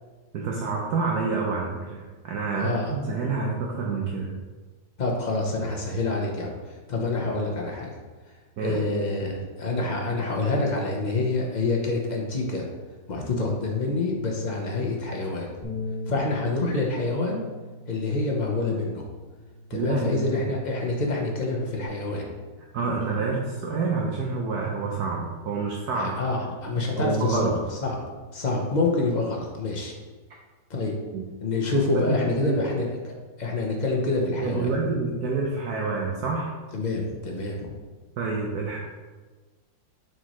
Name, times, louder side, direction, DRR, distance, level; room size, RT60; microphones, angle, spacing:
voice 1, 0.3-4.3 8.6-8.8 19.7-20.5 22.7-26.1 27.0-27.6 31.1-31.2 31.9-32.7 34.4-36.5 38.2-38.8, right 4 dB, 65° right, -2 dB, 1.2 m, -28 dB
voice 2, 2.6-2.9 5.0-6.5 6.9-7.9 8.6-12.7 13.1-15.5 16.1-17.4 17.9-19.0 19.7-22.2 25.9-28.0 28.3-29.9 30.7-30.9 31.4-34.7 36.7-37.7, left 3 dB, 35° left, -1 dB, 0.7 m, -27 dB
Bass guitar, 15.6-21.9, left 1 dB, 20° left, 1.5 m, -40 dB
7.6 x 4.4 x 3.1 m, 1.3 s
omnidirectional pair, 1.9 m